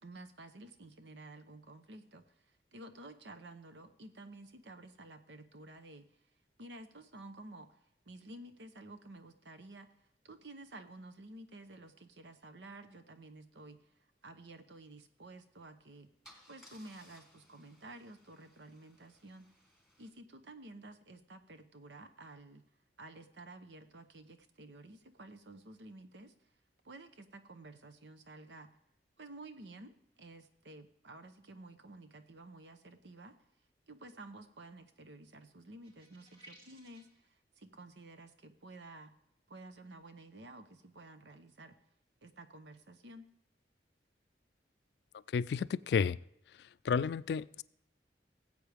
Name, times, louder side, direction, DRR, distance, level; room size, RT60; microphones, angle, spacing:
voice 1, 0.0-6.1 6.6-7.8 8.1-9.9 10.2-13.8 14.2-16.1 16.5-19.5 20.0-22.6 23.0-26.3 26.8-28.7 29.2-33.3 33.9-39.1 39.5-41.8 42.2-43.3, right 2 dB, 80° right, 1.0 m, -52 dB
Car / Engine starting / Idling, 15.5-15.7 16.2-20.1, equal, 5° right, 1.9 m, -62 dB
sound 1, 35.8-37.2, right 1 dB, 30° right, 2.5 m, -58 dB
voice 2, 45.3-46.2 46.6-47.6, left 6 dB, 65° left, 0.3 m, -32 dB
18.5 x 8.0 x 3.5 m
head